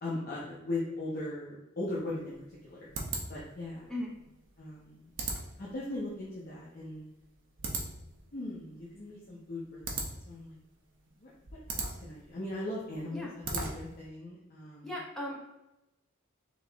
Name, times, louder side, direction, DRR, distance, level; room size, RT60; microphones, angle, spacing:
voice 1, 0.0-2.9 3.3-3.9 4.6-5.1 5.6-7.0 8.3-10.6 11.2-14.9, left 2 dB, 45° left, -6 dB, 0.8 m, -39 dB
sound 1, 1.9-14.1, right 3 dB, 60° right, 0.8 m, -41 dB
voice 2, 14.8-15.4, left 1 dB, ahead, -5 dB, 0.9 m, -37 dB
3.9 x 3.0 x 3.4 m, 0.96 s
head